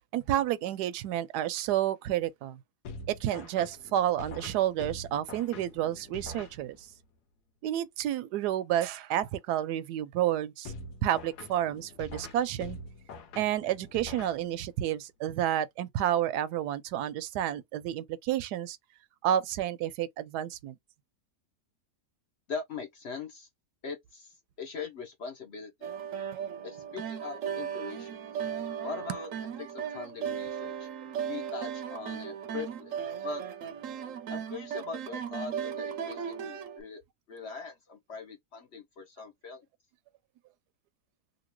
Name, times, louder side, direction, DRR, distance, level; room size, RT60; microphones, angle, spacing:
voice 1, 0.1-2.6 3.1-6.8 7.6-10.7 11.0-12.8 13.4-18.8 19.2-20.7, right 11 dB, 85° right, 1.1 m, -30 dB
sound 1, 2.8-7.0 10.6-14.9, left 2 dB, 80° left, 1.3 m, -45 dB
voice 2, 22.5-23.5 23.8-25.9 26.6-28.2 28.8-29.3 29.6-30.9 31.3-33.0 33.2-33.4 34.3-37.0 37.3-39.6, left 5 dB, 50° left, 0.9 m, -41 dB
sound 2, 25.8-36.8, right 8 dB, 65° right, 0.9 m, -36 dB
2.9 x 2.8 x 3.0 m
omnidirectional pair, 1.7 m